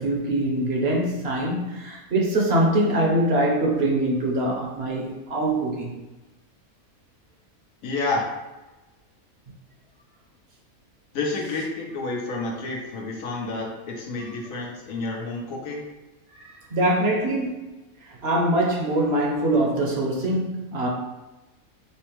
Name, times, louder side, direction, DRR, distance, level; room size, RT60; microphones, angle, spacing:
voice 1, 0.0-5.9 16.3-17.7 18.1-20.9, right 1 dB, 50° right, -1 dB, 1.0 m, -23 dB
voice 2, 7.8-8.3 11.1-15.8, left 3 dB, 75° left, -1 dB, 1.3 m, -29 dB
5.7 x 2.1 x 3.0 m, 1.1 s
omnidirectional pair, 1.5 m